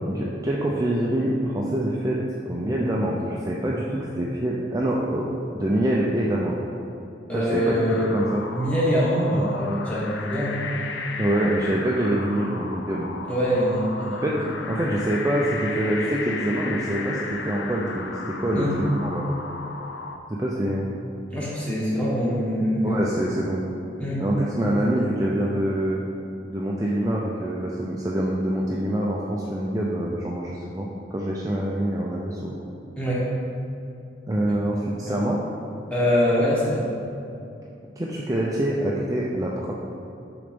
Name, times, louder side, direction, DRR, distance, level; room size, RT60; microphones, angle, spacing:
voice 1, 0.1-2.2 2.4-5.2 5.5-6.6 7.3-7.7 8.1-8.4 11.2-13.1 14.2-14.4 14.6-19.2 20.3-20.9 22.8-23.6 24.2-26.0 26.5-32.6 34.3-35.4 38.0-39.7, right 1 dB, 20° right, -4 dB, 0.4 m, -25 dB
voice 2, 7.3-8.0 8.5-10.6 13.3-14.2 18.5-18.8 21.3-23.0 24.0-24.2 33.0-33.3 35.1-35.2 35.9-36.8, equal, 5° left, -7 dB, 1.4 m, -24 dB
sound 1, 7.9-20.2, left 4 dB, 80° left, 0.5 m, -35 dB
6.6 x 4.0 x 5.2 m, 2.7 s
head